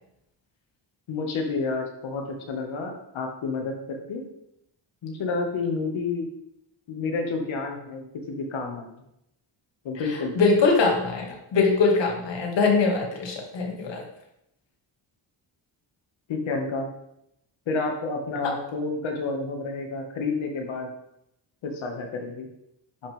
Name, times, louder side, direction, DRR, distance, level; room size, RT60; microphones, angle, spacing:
voice 1, 1.1-4.2 5.0-6.3 6.9-9.0 9.8-10.3 16.3-16.9 17.7-20.9 21.6-22.5, left 3 dB, 85° left, 2 dB, 1.9 m, -30 dB
voice 2, 10.0-14.0 18.4-18.5, left 4 dB, 65° left, 0 dB, 2.2 m, -23 dB
11.0 x 6.4 x 3.6 m, 0.80 s
wide cardioid pair, 180°, 47 cm